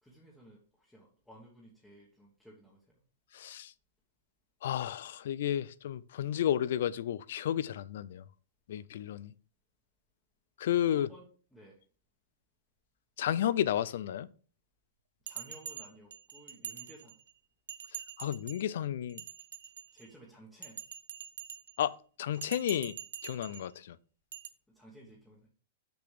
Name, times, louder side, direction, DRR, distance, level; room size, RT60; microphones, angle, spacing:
voice 1, 0.0-3.0 10.9-11.8 15.2-17.2 19.9-20.8 24.7-25.5, equal, 5° left, 1.2 m, -56 dB
voice 2, 3.3-3.7 4.6-8.2 8.7-9.3 10.6-11.1 13.2-14.3 18.2-19.2 21.8-21.9 22.2-22.9 23.2-24.0, left 10 dB, 60° left, 0.5 m, -32 dB
Bell, 15.3-17.3 17.7-18.7 19.1-20.1 20.6-21.9 22.3-23.7 24.3-24.5, right 9 dB, 80° right, 0.8 m, -45 dB
6.8 x 6.0 x 5.0 m
supercardioid pair, 165°, 0 cm